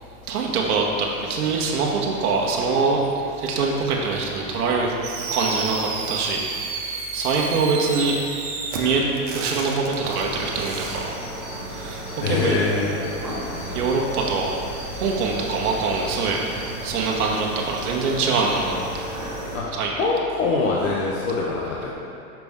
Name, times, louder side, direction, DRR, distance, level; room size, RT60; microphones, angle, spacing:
voice 1, 0.3-4.9 5.3-8.2 8.8-11.1 11.6-12.5 13.7-14.6 14.9-16.4 16.8-19.0 19.8-19.9, right 4 dB, 85° right, -2 dB, 1.1 m, -24 dB
Fireworks, 5.0-11.1, right 4 dB, 35° right, 0.6 m, -31 dB
sound 1, 10.1-19.6, right 1 dB, 5° right, 1.3 m, -34 dB
voice 2, 12.2-13.0 19.5-21.9, left 3 dB, 60° left, -4 dB, 0.8 m, -23 dB
5.8 x 5.3 x 3.5 m, 2.7 s
supercardioid pair, 175°, 44 cm